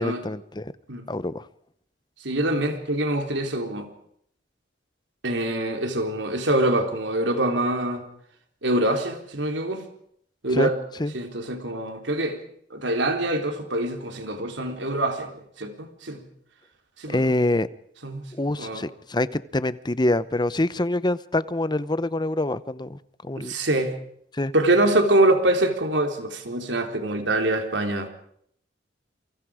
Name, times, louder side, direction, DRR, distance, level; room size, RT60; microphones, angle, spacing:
voice 1, 0.0-0.7 1.1-1.5 10.5-10.7 11.0-11.1 17.1-17.7 18.3-23.5 24.3-24.5, left 1 dB, 25° left, 16 dB, 0.8 m, -25 dB
voice 2, 2.2-3.9 5.2-8.1 8.6-9.8 10.4-10.8 11.1-12.4 12.7-16.2 17.0-17.3 18.0-18.3 18.6-18.8 23.4-23.9 24.5-28.1, right 1 dB, 90° right, 5 dB, 3.7 m, -24 dB
28.5 x 24.5 x 5.1 m, 0.68 s
head